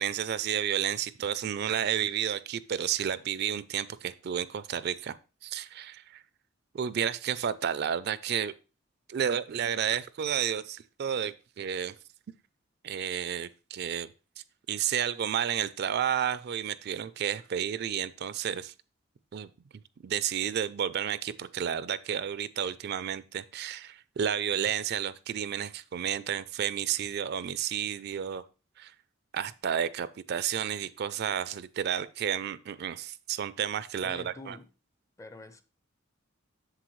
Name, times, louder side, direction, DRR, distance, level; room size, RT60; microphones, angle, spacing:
voice 1, 0.0-5.2 5.4-6.2 6.7-8.5 9.1-11.9 12.8-14.1 14.7-18.7 19.3-19.5 20.0-28.4 28.8-28.9 29.3-34.6, right 9 dB, 50° right, 0.4 m, -31 dB
voice 2, 34.0-34.7 35.2-35.6, left 2 dB, 15° left, 0.5 m, -46 dB
7.7 x 6.7 x 3.1 m
head